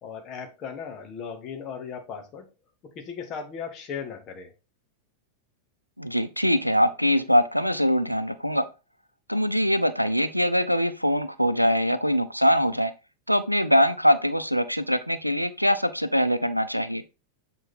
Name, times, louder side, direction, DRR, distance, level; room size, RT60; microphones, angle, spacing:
voice 1, 0.0-2.5 2.8-4.5, left 6 dB, 35° left, 5 dB, 1.7 m, -37 dB
voice 2, 6.0-8.6 9.3-12.9 13.3-17.0, equal, 90° right, 12 dB, 0.6 m, -23 dB
7.9 x 4.0 x 4.2 m, 0.29 s
figure-of-eight pair, 90°, 0 cm